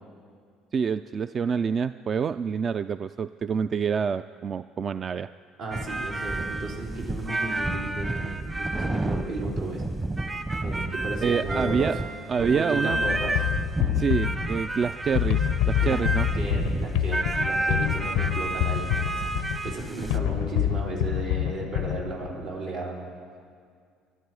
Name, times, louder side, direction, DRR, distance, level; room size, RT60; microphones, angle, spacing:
voice 1, 0.7-5.3 11.2-12.0 12.3-13.0 14.0-16.3, right 6 dB, 40° right, 13 dB, 0.3 m, -27 dB
voice 2, 5.6-9.8 10.6-12.0 12.4-13.4 15.8-16.0 16.4-23.1, right 2 dB, 80° right, -4 dB, 3.9 m, -34 dB
sound 1, 5.7-20.2, right 2 dB, 25° right, 1.0 m, -30 dB
sound 2, 12.9-22.5, left 14 dB, 80° left, 0.5 m, -27 dB
24.0 x 12.0 x 4.8 m, 2.2 s
supercardioid pair, 75°, 0 cm